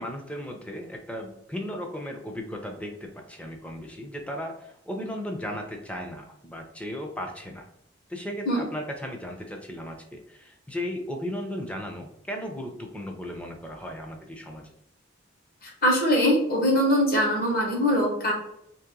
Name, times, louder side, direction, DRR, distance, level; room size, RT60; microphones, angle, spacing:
voice 1, 0.0-7.7 8.1-14.7, equal, 5° left, 2 dB, 0.6 m, -36 dB
voice 2, 15.6-18.3, equal, 50° left, -1 dB, 1.3 m, -22 dB
3.2 x 2.9 x 3.7 m, 0.79 s
head